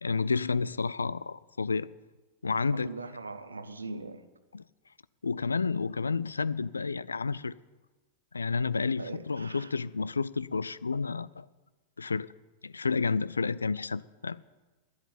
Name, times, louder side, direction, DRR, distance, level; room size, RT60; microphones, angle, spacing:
voice 1, 0.0-1.9 2.4-2.9 4.5-4.6 5.2-7.5 8.3-11.4 12.0-12.3 12.6-14.4, left 4 dB, 75° left, 0.3 m, -30 dB
voice 2, 2.7-4.2 9.0-9.7, right 3 dB, 80° right, 0.8 m, -40 dB
11.0 x 7.9 x 9.1 m
figure-of-eight pair, 90°, 0 cm